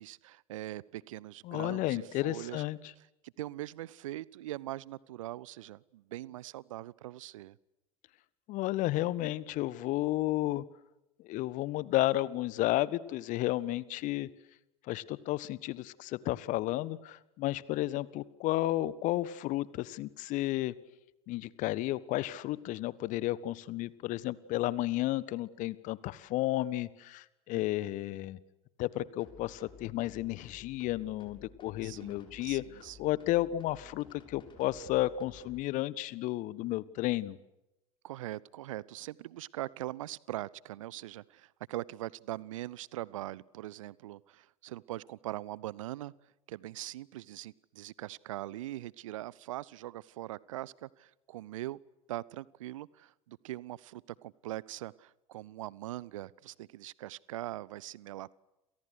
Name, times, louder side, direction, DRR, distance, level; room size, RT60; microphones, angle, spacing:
voice 1, 0.0-2.6 3.0-7.6 31.8-33.0 38.0-46.1 46.5-51.8 52.1-58.3, right 15 dB, 65° right, 24 dB, 0.9 m, -42 dB
voice 2, 1.4-2.8 8.5-10.6 11.2-14.3 14.9-20.7 21.3-28.4 28.8-32.6 33.0-37.4, left 16 dB, 45° left, 19 dB, 1.5 m, -32 dB
sound 1, 29.2-35.6, left 5 dB, 25° left, 7.5 m, -55 dB
30.0 x 28.5 x 6.6 m, 0.93 s
figure-of-eight pair, 75°, 18 cm